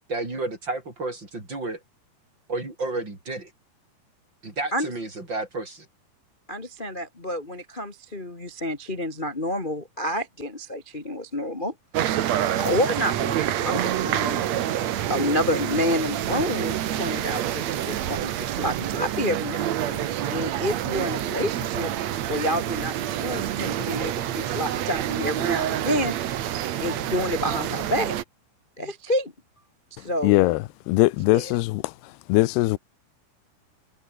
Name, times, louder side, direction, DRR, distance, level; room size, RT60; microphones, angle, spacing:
voice 1, 0.1-1.8 2.5-3.5 4.4-5.9, right 2 dB, 25° right, 7.3 m, -31 dB
voice 2, 6.5-11.7 12.6-14.4 15.1-21.9 22.3-26.4 26.8-28.1 28.8-29.3 29.9-30.4 31.3-31.5, left 1 dB, 40° left, 0.6 m, -29 dB
sound 1, 11.9-28.2, right 11 dB, 75° right, 1.6 m, -27 dB
voice 3, 30.2-31.9 32.3-32.8, left 19 dB, 80° left, 2.6 m, -21 dB
omnidirectional pair, 5.0 m